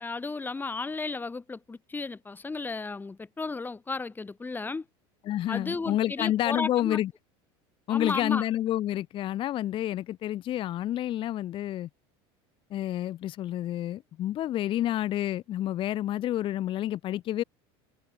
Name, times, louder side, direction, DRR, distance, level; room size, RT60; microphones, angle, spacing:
voice 1, 0.0-4.9 5.5-7.0 7.9-8.4, left 3 dB, 15° left, 1.9 m, -34 dB
voice 2, 5.3-7.1 7.9-11.9 12.7-17.4, left 13 dB, 40° left, 0.6 m, -29 dB
supercardioid pair, 110°, 13 cm